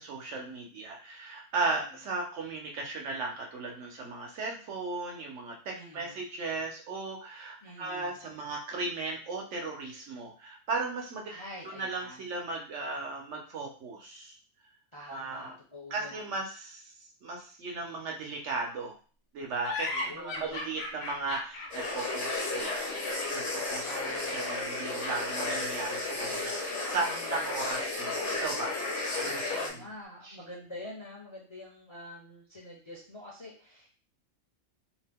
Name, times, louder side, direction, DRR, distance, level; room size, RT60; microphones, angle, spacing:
voice 1, 0.0-5.5 5.9-11.3 11.6-14.4 15.1-15.5 15.9-16.8 17.2-18.9 19.3-23.0 23.3-23.9 24.3-28.8 29.1-29.5 30.2-30.4, right 3 dB, 70° right, 1 dB, 1.0 m, -36 dB
voice 2, 1.6-2.0 5.7-6.3 7.6-8.2 11.3-12.2 14.9-16.4 19.9-20.8 23.9-24.4 27.0-27.6 29.5-33.9, left 1 dB, 30° left, -4 dB, 0.6 m, -46 dB
sound 1, 19.6-29.5, left 2 dB, 85° left, 1.1 m, -40 dB
sound 2, 21.7-29.7, left 2 dB, 60° left, 1.1 m, -33 dB
2.8 x 2.1 x 3.4 m, 0.40 s
omnidirectional pair, 1.3 m